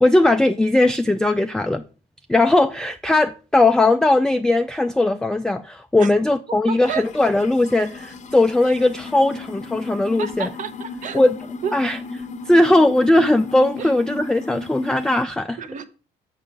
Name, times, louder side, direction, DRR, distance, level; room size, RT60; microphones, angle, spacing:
voice 1, 0.0-1.8 2.3-10.5 11.1-11.4 11.7-12.0 12.5-15.6, left 2 dB, 5° left, 0.3 m, -18 dB
voice 2, 6.7-7.0 10.2-11.2 11.6-11.7 13.8-13.9 15.6-15.9, right 7 dB, 50° right, 0.9 m, -29 dB
sound 1, 6.8-15.3, left 3 dB, 45° left, 0.7 m, -35 dB
7.2 x 5.6 x 5.1 m
cardioid pair, 110°, 17 cm